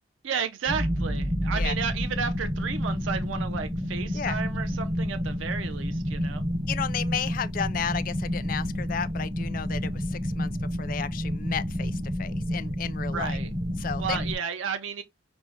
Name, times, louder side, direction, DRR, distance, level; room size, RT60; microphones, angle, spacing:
voice 1, 0.2-6.4 13.1-13.5 14.0-15.0, right 6 dB, 70° right, 0.4 m, -32 dB
sound 1, 0.7-14.4, equal, 30° right, 0.7 m, -29 dB
voice 2, 6.7-10.5 10.8-13.4 13.8-14.3, left 7 dB, 45° left, 0.3 m, -33 dB
6.0 x 2.0 x 3.0 m
head